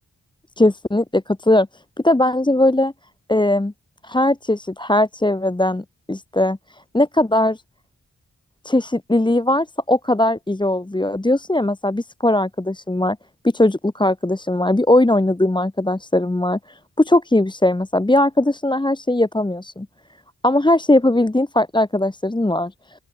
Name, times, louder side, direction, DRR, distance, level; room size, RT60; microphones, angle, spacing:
voice 1, 0.6-1.7 2.0-2.9 3.3-3.7 4.0-6.6 6.9-7.6 8.6-13.2 13.5-19.9 20.4-22.7, left 1 dB, 15° left, 1.2 m, -19 dB
open air
cardioid pair, 65°, 35 cm